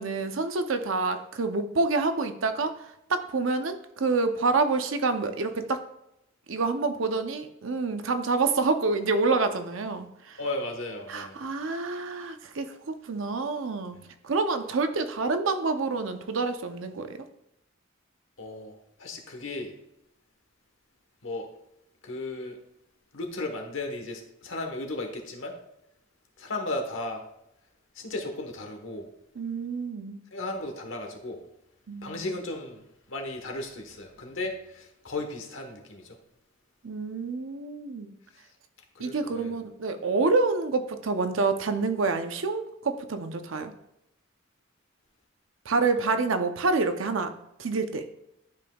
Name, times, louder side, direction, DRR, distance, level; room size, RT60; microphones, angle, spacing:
voice 1, 0.0-5.8 6.5-10.4 11.1-14.0 14.2-17.2 29.4-30.2 31.9-32.3 36.8-38.2 39.0-43.7 45.7-47.3 47.6-48.1, right 3 dB, 70° right, 8 dB, 0.7 m, -27 dB
voice 2, 10.4-11.4 18.4-19.7 21.2-21.5 22.0-22.6 23.1-25.5 26.4-27.2 27.9-29.1 30.3-31.4 32.0-36.2 38.3-38.4 38.9-39.5 46.0-46.1, left 2 dB, 65° left, 3 dB, 1.2 m, -35 dB
11.5 x 5.2 x 2.3 m, 0.82 s
head